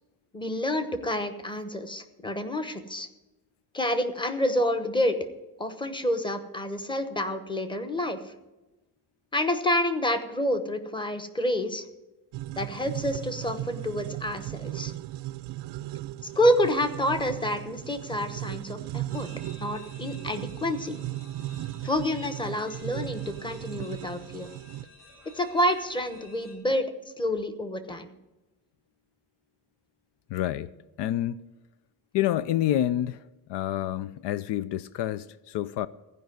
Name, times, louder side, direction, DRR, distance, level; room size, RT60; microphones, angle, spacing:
voice 1, 0.3-3.1 3.7-5.2 5.6-8.2 9.3-11.8 12.6-14.9 16.3-19.3 19.6-21.0 21.8-24.5 25.3-26.8 27.2-28.1, left 1 dB, 10° left, 1.0 m, -28 dB
sound 1, 12.3-24.8, right 15 dB, 80° right, 0.5 m, -37 dB
sound 2, 19.1-26.5, left 1 dB, 45° left, 5.1 m, -53 dB
voice 2, 30.3-30.7 31.0-31.4 32.1-33.2 33.5-35.9, left 12 dB, 80° left, 0.5 m, -28 dB
15.0 x 5.3 x 9.2 m
cardioid pair, 130°, 41 cm